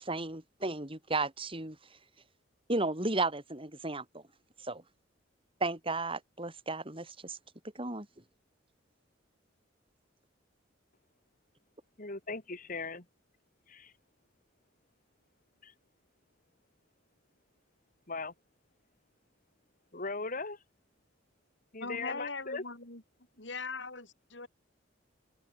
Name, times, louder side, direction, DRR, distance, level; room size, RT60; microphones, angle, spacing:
voice 1, 0.0-1.8 2.7-4.2 4.6-4.8 5.6-7.4 7.7-8.1, right 2 dB, 30° right, 4.4 m, -34 dB
voice 2, 12.0-13.0 13.7-13.9 15.6-15.7 18.1-18.3 19.9-20.6 21.7-22.6, left 3 dB, 45° left, 3.1 m, -38 dB
voice 3, 21.8-23.0 23.4-24.5, left 3 dB, 70° left, 6.6 m, -40 dB
open air
head